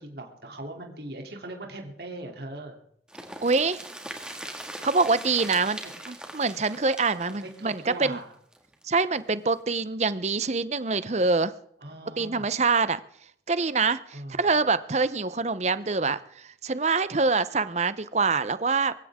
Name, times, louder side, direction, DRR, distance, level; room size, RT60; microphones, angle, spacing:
voice 1, 0.0-2.8 5.8-5.9 7.1-8.3 11.8-12.5 14.1-14.5, right 1 dB, 60° right, 2 dB, 3.1 m, -40 dB
sound 1, 3.1-8.8 9.1-9.2 9.5-9.6, right 1 dB, 5° right, 2.0 m, -41 dB
voice 2, 3.4-3.8 4.8-5.8 6.1-8.2 8.8-11.5 12.2-13.0 13.5-18.9, right 4 dB, 35° right, 15 dB, 0.7 m, -25 dB
23.5 x 15.5 x 3.7 m, 0.70 s
head